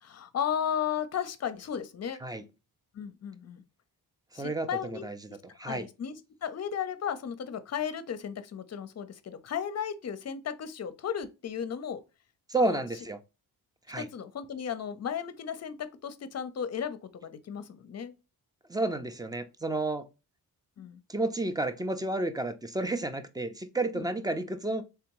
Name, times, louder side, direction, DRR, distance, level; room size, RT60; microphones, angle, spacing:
voice 1, 0.0-2.2 2.9-3.6 4.3-5.1 5.6-12.0 12.5-12.8 14.0-18.1 20.8-21.0 24.0-24.1, left 8 dB, 40° left, 0.6 m, -35 dB
voice 2, 4.3-5.2 5.6-5.9 12.5-13.2 13.9-14.1 18.7-20.0 21.1-24.8, right 2 dB, 10° right, 0.4 m, -31 dB
3.4 x 3.4 x 3.0 m
cardioid pair, 90°, 38 cm